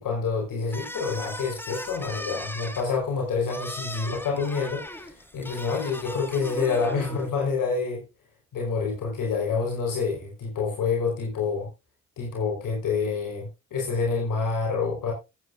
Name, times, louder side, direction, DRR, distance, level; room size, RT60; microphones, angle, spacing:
voice 1, 0.0-8.0 8.5-11.7 12.2-15.1, left 4 dB, 65° left, 0 dB, 4.7 m, -27 dB
sound 1, 0.7-7.3, left 1 dB, 5° left, 1.7 m, -38 dB
14.0 x 9.3 x 2.6 m, 0.26 s
supercardioid pair, 55°, 34 cm